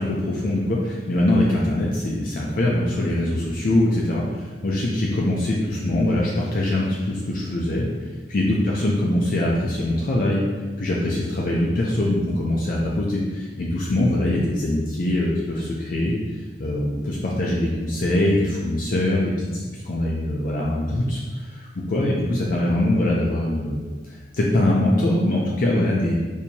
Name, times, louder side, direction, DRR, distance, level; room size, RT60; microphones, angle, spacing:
voice 1, 0.0-7.8 8.3-10.4 10.8-16.1 16.6-26.1, left 1 dB, 50° left, -4 dB, 0.5 m, -23 dB
4.4 x 2.8 x 2.7 m, 1.4 s
head